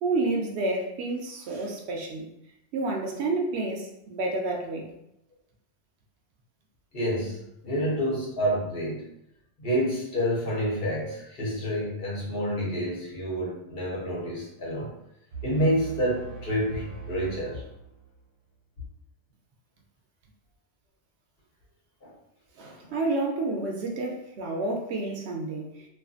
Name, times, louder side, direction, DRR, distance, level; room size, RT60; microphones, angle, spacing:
voice 1, 0.0-2.3 2.7-4.9 22.6-25.9, right 2 dB, 75° right, 0 dB, 0.8 m, -29 dB
voice 2, 6.9-9.1 9.6-14.9 15.4-17.6 22.0-22.1 22.8-22.9, equal, 60° left, -5 dB, 1.0 m, -28 dB
sound 1, 15.3-18.3, right 6 dB, 60° right, 1.2 m, -42 dB
2.5 x 2.5 x 2.4 m, 0.80 s
omnidirectional pair, 1.1 m